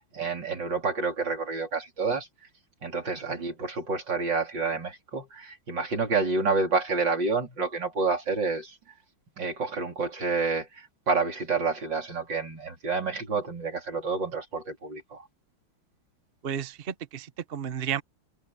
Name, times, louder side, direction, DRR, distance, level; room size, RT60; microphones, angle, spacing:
voice 1, 0.0-2.3 2.8-8.8 9.4-15.3, right 4 dB, 60° right, 4.5 m, -29 dB
voice 2, 16.4-18.0, right 8 dB, 45° right, 0.8 m, -33 dB
omnidirectional pair, 2.3 m